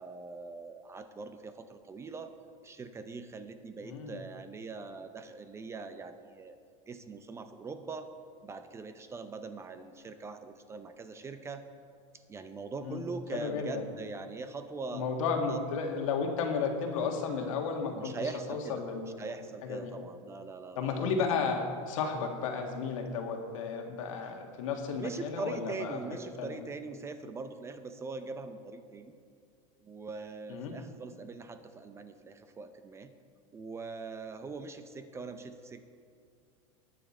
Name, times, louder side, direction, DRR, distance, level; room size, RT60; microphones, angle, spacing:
voice 1, 0.0-2.3 2.6-6.6 6.9-8.1 8.4-11.6 12.3-15.1 15.5-15.6 17.9-18.8 19.2-21.1 24.9-29.1 29.8-33.1 33.5-35.9, right 4 dB, 15° right, 9 dB, 0.6 m, -42 dB
voice 2, 3.8-4.2 12.8-13.0 13.3-13.9 14.9-18.1 18.5-19.1 19.7-19.9 20.7-26.0 26.4-26.6 30.5-30.7, left 5 dB, 80° left, 3 dB, 1.8 m, -33 dB
19.5 x 6.8 x 4.3 m, 2.3 s
supercardioid pair, 140°, 17 cm